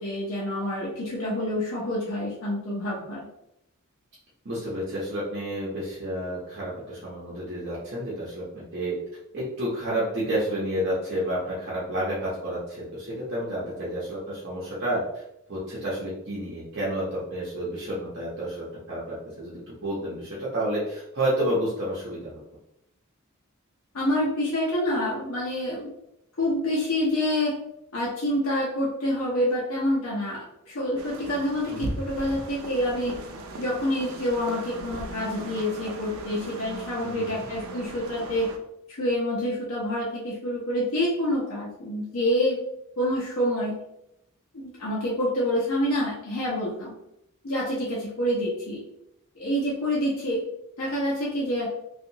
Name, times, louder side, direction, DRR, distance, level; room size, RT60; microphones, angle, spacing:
voice 1, 0.0-3.2 23.9-25.9 26.4-27.5 27.9-33.1 33.6-38.5 38.9-42.6 43.0-43.8 44.5-46.9 47.4-48.8 49.4-50.4 50.8-51.7, left 1 dB, 80° left, -5 dB, 0.7 m, -27 dB
voice 2, 4.4-9.0 9.3-15.2 15.5-22.4 31.7-31.9 37.0-37.4, right 1 dB, 55° right, -7 dB, 0.8 m, -30 dB
sound 1, 31.0-38.6, right 2 dB, 85° right, 0.4 m, -38 dB
2.7 x 2.4 x 2.7 m, 0.81 s
head